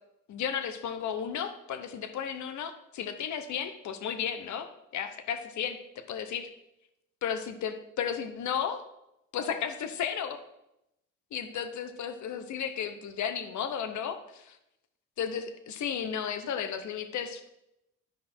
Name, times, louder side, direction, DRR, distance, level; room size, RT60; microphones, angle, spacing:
voice 1, 0.3-4.7 4.9-6.5 7.2-8.8 9.3-10.4 11.3-14.6 15.2-17.4, left 8 dB, 70° left, 9 dB, 1.0 m, -34 dB
12.0 x 5.1 x 4.4 m, 0.86 s
cardioid pair, 90°, 30 cm